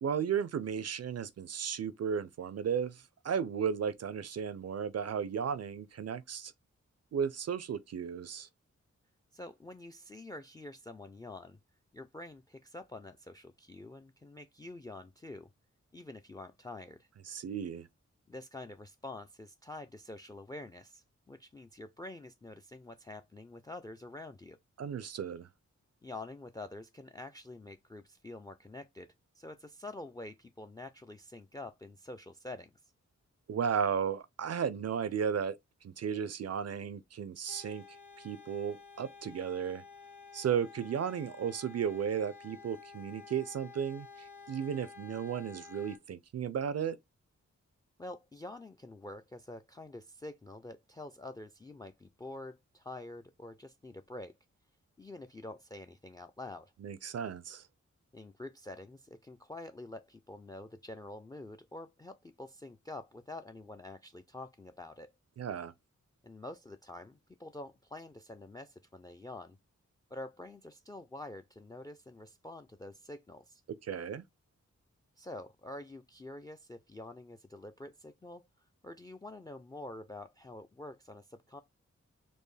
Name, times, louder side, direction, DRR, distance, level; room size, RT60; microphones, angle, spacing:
voice 1, 0.0-6.5 7.1-8.5 17.3-17.9 24.8-25.5 33.5-35.6 35.8-37.8 38.2-39.8 40.3-47.0 56.8-57.6 65.4-65.7 73.8-74.2, right 7 dB, 55° right, 0.4 m, -34 dB
voice 2, 9.3-11.6 11.9-15.5 15.9-17.1 18.3-24.6 26.0-29.1 29.4-32.7 48.0-54.3 55.0-56.7 58.1-65.1 66.2-69.6 70.1-73.6 75.2-78.4 78.8-81.6, left 2 dB, 15° left, 0.4 m, -47 dB
sound 1, 37.5-46.0, left 5 dB, 80° left, 2.1 m, -52 dB
4.4 x 2.6 x 3.2 m
cardioid pair, 55°, 30 cm